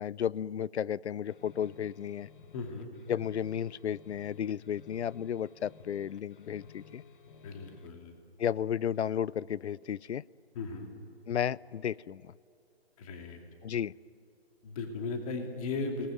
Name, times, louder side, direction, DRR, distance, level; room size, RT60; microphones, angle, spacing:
voice 1, 0.0-2.3 3.1-7.0 8.4-10.2 11.3-12.3 13.6-13.9, left 9 dB, 90° left, 24 dB, 0.5 m, -33 dB
sound 1, 1.2-8.0, left 5 dB, 50° left, 1.8 m, -55 dB
voice 2, 2.5-2.9 7.4-8.1 10.5-10.9 13.0-13.4 14.6-16.1, left 3 dB, 30° left, 4 dB, 2.6 m, -37 dB
29.5 x 19.5 x 9.2 m, 2.5 s
hypercardioid pair, 155°, 33 cm